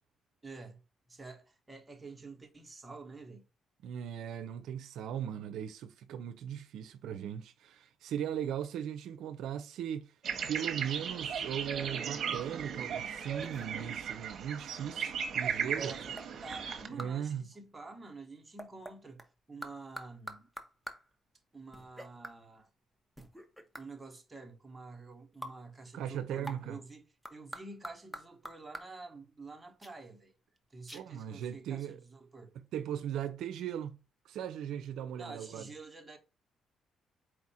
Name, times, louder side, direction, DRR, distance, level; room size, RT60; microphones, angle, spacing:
voice 1, 0.4-0.8 1.1-3.4 15.6-16.1 16.4-19.2 19.5-20.5 21.5-22.7 23.8-27.0 27.3-30.3 30.7-32.5 35.2-36.2, right 3 dB, 20° right, 1.0 m, -48 dB
voice 2, 3.8-10.2 10.5-16.0 16.9-17.4 25.9-26.8 30.9-32.0 32.7-34.0 34.2-35.6, right 9 dB, 80° right, 0.4 m, -38 dB
sound 1, 10.2-16.9, right 7 dB, 60° right, 0.8 m, -36 dB
sound 2, 12.3-12.6 13.4-13.9 16.2-16.3 17.0-17.3 18.6-19.3 19.6-21.1 21.7-22.4 23.2-23.9 25.4-25.6 26.4-26.7 27.2-29.0 29.8-29.9 30.6-30.7 30.9-31.0, right 1 dB, ahead, 0.7 m, -46 dB
4.4 x 2.4 x 4.1 m
cardioid pair, 90°, 0 cm